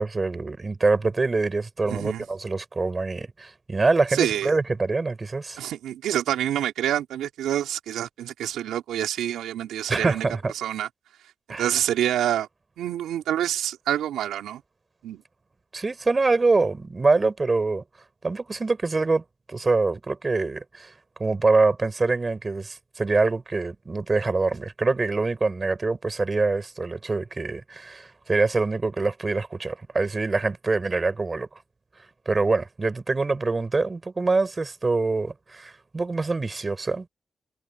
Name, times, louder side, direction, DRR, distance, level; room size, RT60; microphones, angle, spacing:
voice 1, 0.0-5.6 9.9-10.5 11.5-11.7 15.7-17.8 18.2-20.9 21.2-31.5 32.2-37.1, right 3 dB, 40° right, 4.8 m, -25 dB
voice 2, 1.8-2.2 4.1-4.5 5.6-10.3 10.5-10.9 11.6-12.5 12.8-14.6 15.0-15.2, right 11 dB, 90° right, 3.6 m, -27 dB
supercardioid pair, 50°, 0 cm